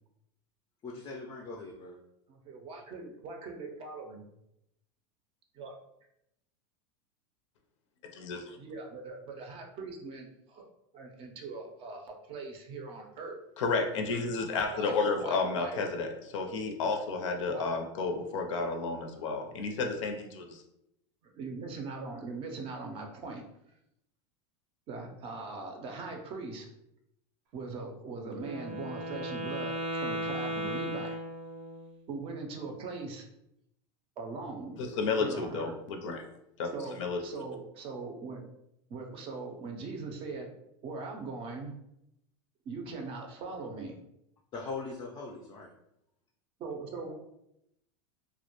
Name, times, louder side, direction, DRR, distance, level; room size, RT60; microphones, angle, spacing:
voice 1, 0.8-2.0 44.5-45.7, left 3 dB, 25° left, -1 dB, 0.4 m, -40 dB
voice 2, 2.3-4.2 5.5-5.7 8.6-10.6 10.9-13.4 14.7-15.8 17.5-17.7 21.2-23.4 24.9-26.7 27.5-31.2 32.1-33.3 34.2-34.8 35.2-35.8 36.7-38.4 38.9-40.5 40.8-41.7 42.7-44.0 46.6-47.1, right 3 dB, 35° right, 2 dB, 0.4 m, -40 dB
voice 3, 8.1-8.6 13.6-20.6 34.8-36.2 36.6-36.7 37.0-37.2, left 4 dB, 85° left, 4 dB, 0.5 m, -31 dB
Wind instrument woodwind instrument, 28.3-32.0, right 1 dB, 80° right, 0.6 m, -36 dB
2.2 x 2.1 x 2.9 m, 0.81 s
supercardioid pair, 130°, 15 cm